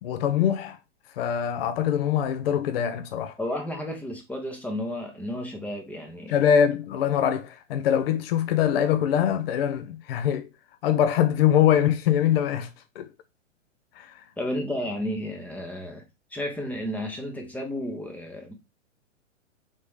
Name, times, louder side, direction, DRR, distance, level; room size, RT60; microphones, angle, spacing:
voice 1, 0.0-0.8 1.2-3.3 6.3-10.5 10.8-12.7 13.0-13.1 14.0-14.1, left 9 dB, 50° left, 0.5 m, -23 dB
voice 2, 3.4-6.4 14.4-16.0 16.3-18.5, left 1 dB, 5° left, 0.8 m, -32 dB
3.8 x 3.6 x 3.2 m
hypercardioid pair, 120°, 38 cm